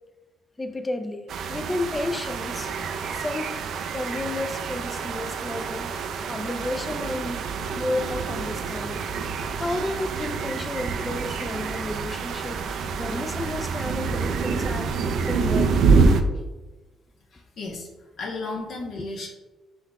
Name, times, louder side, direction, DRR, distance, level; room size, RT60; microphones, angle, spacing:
voice 1, 0.6-2.7 3.1-3.6 3.9-5.9 6.3-7.4 7.7-9.0 9.5-12.6 13.0-14.9 15.3-16.1, left 1 dB, 20° left, 8 dB, 0.4 m, -31 dB
sound 1, 1.3-16.2, right 5 dB, 70° right, 0.4 m, -27 dB
voice 2, 17.3-19.3, left 3 dB, 65° left, -2 dB, 1.0 m, -34 dB
5.3 x 3.8 x 2.3 m, 1.1 s
cardioid pair, 90°, 0 cm